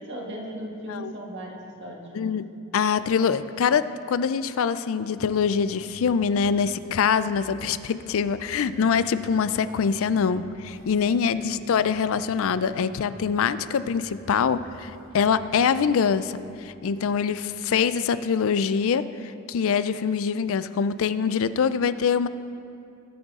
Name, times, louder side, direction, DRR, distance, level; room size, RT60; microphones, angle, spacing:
voice 1, 0.0-2.4 11.3-11.4, equal, 55° right, 0 dB, 1.7 m, -37 dB
voice 2, 2.1-2.5 2.7-22.3, left 6 dB, 70° left, 14 dB, 0.4 m, -24 dB
sound 1, 5.1-18.4, equal, 25° right, 3.3 m, -50 dB
20.0 x 8.0 x 3.7 m, 2.5 s
head